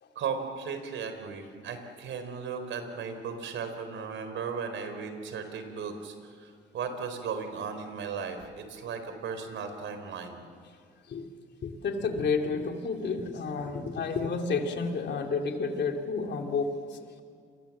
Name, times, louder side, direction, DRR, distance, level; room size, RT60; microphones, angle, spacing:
voice 1, 0.1-10.4, right 6 dB, 75° right, 8 dB, 4.4 m, -36 dB
voice 2, 11.6-17.2, left 4 dB, 60° left, 3 dB, 3.1 m, -31 dB
29.0 x 23.0 x 7.6 m, 2.2 s
cardioid pair, 90°, 20 cm